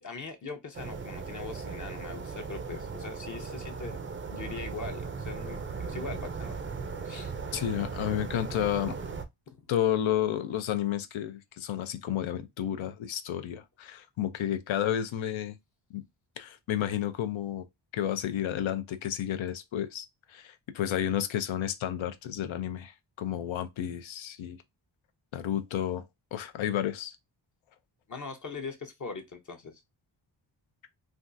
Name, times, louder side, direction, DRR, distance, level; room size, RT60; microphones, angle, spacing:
voice 1, 0.0-4.0 4.3-6.6 7.0-7.3 28.1-29.8, left 4 dB, 40° left, 0.7 m, -41 dB
sound 1, 0.7-9.3, right 5 dB, 30° right, 0.4 m, -37 dB
voice 2, 7.5-8.9 9.7-15.6 15.9-16.0 16.4-17.7 17.9-24.6 25.3-26.1 26.3-27.2, left 11 dB, 85° left, 0.6 m, -31 dB
3.4 x 2.4 x 2.5 m
wide cardioid pair, 120°, 45 cm